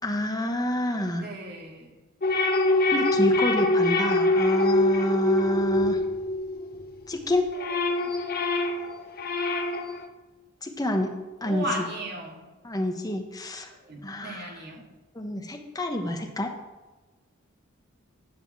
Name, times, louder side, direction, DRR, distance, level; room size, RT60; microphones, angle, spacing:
voice 1, 0.0-1.3 2.9-6.0 7.1-7.5 10.6-11.1 11.4-11.9 12.6-13.7 14.0-14.6 15.1-16.5, equal, 20° left, 3 dB, 1.1 m, -28 dB
voice 2, 1.2-1.9 7.6-7.7 11.4-12.4 13.8-14.8, right 1 dB, 50° right, -1 dB, 2.1 m, -35 dB
sound 1, 2.2-6.9 7.3-10.1, left 2 dB, 45° left, 0.8 m, -24 dB
9.5 x 5.3 x 7.4 m, 1.2 s
head